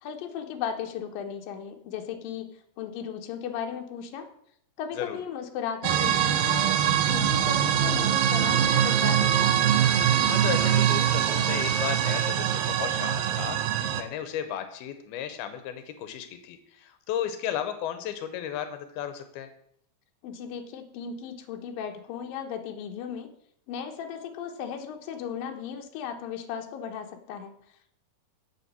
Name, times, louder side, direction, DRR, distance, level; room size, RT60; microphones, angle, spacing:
voice 1, 0.0-4.3 4.8-9.6 20.2-23.3 23.7-27.5, left 7 dB, 75° left, 4 dB, 2.7 m, -36 dB
sound 1, 5.8-14.0, right 9 dB, 80° right, 2.4 m, -23 dB
voice 2, 10.2-19.5, left 9 dB, 90° left, 9 dB, 2.9 m, -34 dB
8.3 x 7.1 x 7.4 m, 0.69 s
omnidirectional pair, 4.3 m